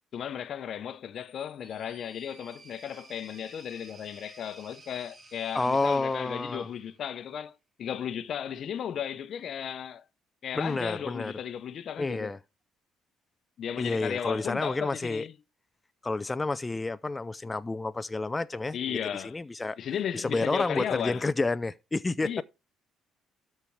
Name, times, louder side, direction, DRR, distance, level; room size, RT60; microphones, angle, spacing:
voice 1, 0.1-7.5 7.8-10.0 10.4-12.3 13.6-15.3 18.7-19.4 19.8-21.2 22.2-22.4, left 9 dB, 60° left, 0.7 m, -35 dB
sound 1, 1.2-7.4, right 2 dB, 30° right, 3.8 m, -54 dB
voice 2, 5.5-6.7 10.5-11.3 12.0-12.4 13.8-15.2 16.0-19.8 20.1-22.3, left 3 dB, 20° left, 0.4 m, -30 dB
13.0 x 4.4 x 4.7 m
supercardioid pair, 80°, 0 cm